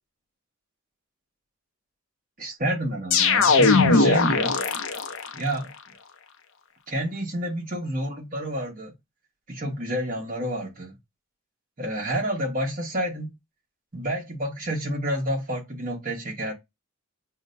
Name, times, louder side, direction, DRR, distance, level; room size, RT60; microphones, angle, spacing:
voice 1, 2.4-4.6 5.3-5.7 6.9-8.9 9.5-11.0 11.8-13.4 13.9-16.5, equal, 40° right, 1.2 m, -29 dB
sound 1, 3.1-5.3, left 4 dB, 65° left, 0.6 m, -19 dB
6.2 x 2.1 x 2.5 m
head